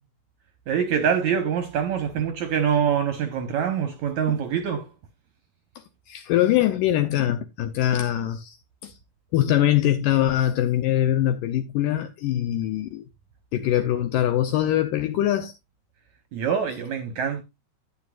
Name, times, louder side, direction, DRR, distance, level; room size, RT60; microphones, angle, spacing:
voice 1, 0.7-4.9 16.3-17.4, right 7 dB, 70° right, 1.8 m, -24 dB
voice 2, 6.1-8.6 8.8-9.0 9.3-13.0 13.5-15.5, left 12 dB, 80° left, 2.0 m, -23 dB
11.0 x 9.6 x 2.4 m
omnidirectional pair, 4.5 m